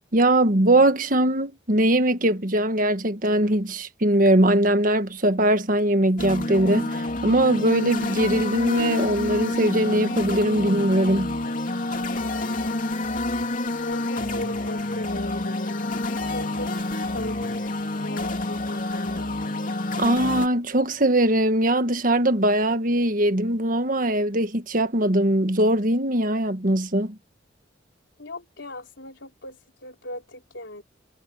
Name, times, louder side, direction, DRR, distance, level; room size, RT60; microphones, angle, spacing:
voice 1, 0.1-11.4 20.0-27.2, right 1 dB, 45° right, 1.6 m, -21 dB
sound 1, 6.2-20.5, left 2 dB, 45° left, 2.9 m, -28 dB
voice 2, 13.6-16.0 16.3-17.6 18.0-19.3 28.2-30.8, left 1 dB, 80° left, 3.8 m, -38 dB
head